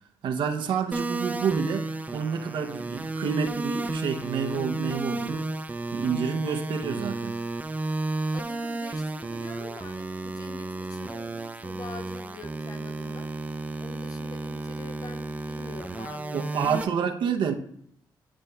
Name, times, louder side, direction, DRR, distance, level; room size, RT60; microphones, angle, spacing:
voice 1, 0.2-5.5 5.9-7.4 16.3-17.5, right 6 dB, 80° right, 5 dB, 0.6 m, -29 dB
sound 1, 0.9-16.8, right 2 dB, 20° right, 0.4 m, -33 dB
voice 2, 8.3-13.3 13.8-17.1, left 3 dB, 50° left, 6 dB, 0.8 m, -44 dB
9.9 x 5.0 x 2.2 m, 0.69 s
cardioid pair, 80°, 8 cm